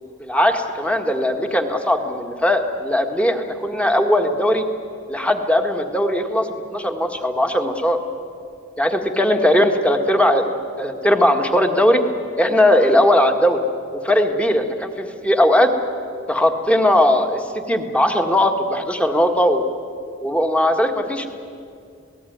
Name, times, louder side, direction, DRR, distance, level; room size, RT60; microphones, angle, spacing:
voice 1, 0.2-4.6 5.1-8.0 8.8-12.0 12.4-13.6 14.0-15.7 16.3-19.6 20.2-21.3, left 1 dB, 5° left, 5 dB, 1.7 m, -19 dB
27.5 x 19.0 x 9.4 m, 2.5 s
head